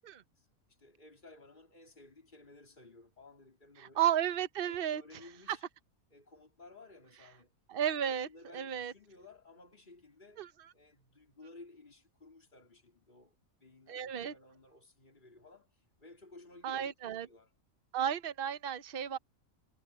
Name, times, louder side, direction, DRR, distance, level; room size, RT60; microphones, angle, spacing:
voice 1, 0.4-4.1 4.7-5.6 6.1-7.5 8.0-10.4 10.7-13.4 13.6-17.5, left 2 dB, 35° left, 3.9 m, -56 dB
voice 2, 3.8-5.0 5.5-5.6 7.7-8.3 8.5-8.9 10.4-10.5 13.9-14.3 16.6-17.3 17.9-19.2, right 10 dB, 45° right, 1.0 m, -33 dB
omnidirectional pair, 1.5 m